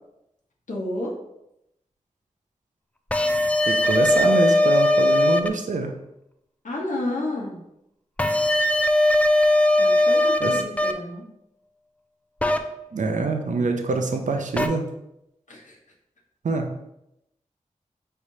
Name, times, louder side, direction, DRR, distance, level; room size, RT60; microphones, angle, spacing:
voice 1, 0.7-1.1 6.6-7.6 9.8-11.2 15.5-15.7, left 1 dB, 75° left, -4 dB, 1.0 m, -30 dB
sound 1, 3.1-5.5 8.2-10.9 12.4-12.6 14.6-14.7, left 1 dB, 10° left, 0.4 m, -19 dB
voice 2, 3.7-5.9 10.4-10.6 12.9-14.9 16.4-16.7, right 3 dB, 70° right, 4 dB, 0.6 m, -25 dB
4.6 x 3.3 x 2.7 m, 0.83 s
cardioid pair, 45°, 13 cm